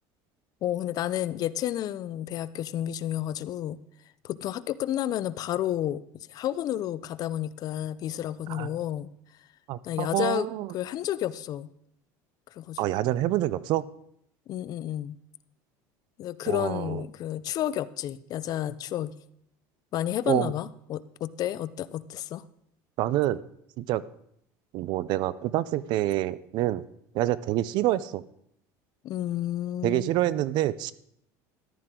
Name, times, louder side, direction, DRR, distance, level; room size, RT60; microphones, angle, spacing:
voice 1, 0.6-3.8 4.2-6.0 6.3-9.1 9.8-10.5 10.7-11.7 12.5-12.8 14.5-15.2 16.2-19.1 19.9-22.4 29.0-30.1, left 12 dB, 45° left, 17 dB, 0.5 m, -31 dB
voice 2, 9.7-10.7 12.8-13.9 16.5-17.0 20.3-20.5 23.0-23.4 23.8-24.0 24.7-26.8 27.1-28.2 29.8-30.9, right 14 dB, 60° right, 18 dB, 0.5 m, -27 dB
14.0 x 11.5 x 3.8 m, 0.72 s
supercardioid pair, 120°, 9 cm